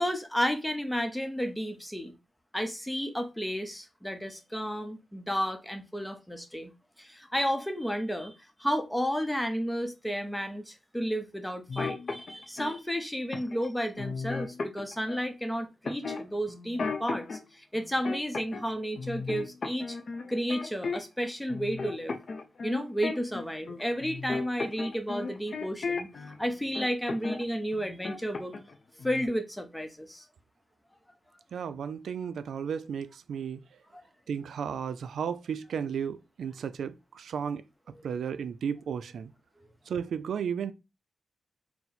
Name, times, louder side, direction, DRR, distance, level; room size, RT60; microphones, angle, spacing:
voice 1, 0.0-2.1 2.5-6.7 7.0-20.0 20.3-22.2 22.6-26.1 26.4-28.5 29.0-30.3 33.9-34.0, equal, 5° left, 0.6 m, -32 dB
sound 1, 11.7-12.7 13.3-13.7 14.0-15.2 15.8-17.4 17.7-18.7 19.0-21.2 21.5-26.4 26.7-27.4 27.7-28.7 29.0-29.3, left 4 dB, 50° left, 0.6 m, -35 dB
voice 2, 31.5-33.6 34.3-37.6 38.0-39.3 39.9-40.7, right 7 dB, 90° right, 0.3 m, -34 dB
4.4 x 2.0 x 3.9 m
wide cardioid pair, 120°, 0 cm